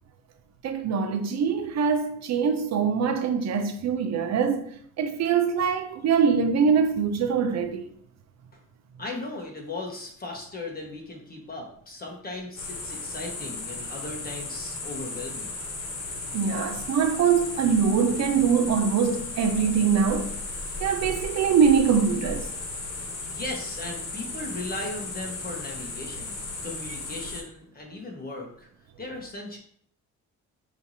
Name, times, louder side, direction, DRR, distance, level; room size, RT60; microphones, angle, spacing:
voice 1, 0.6-4.6 5.0-7.9 16.3-20.3 20.8-22.5, right 6 dB, 60° right, 0.6 m, -23 dB
voice 2, 9.0-15.6 23.3-28.7 29.0-29.6, left 2 dB, 30° left, 1.4 m, -37 dB
sound 1, 12.6-27.4, left 3 dB, 60° left, 1.5 m, -35 dB
5.8 x 3.1 x 2.8 m
cardioid pair, 90°, 30 cm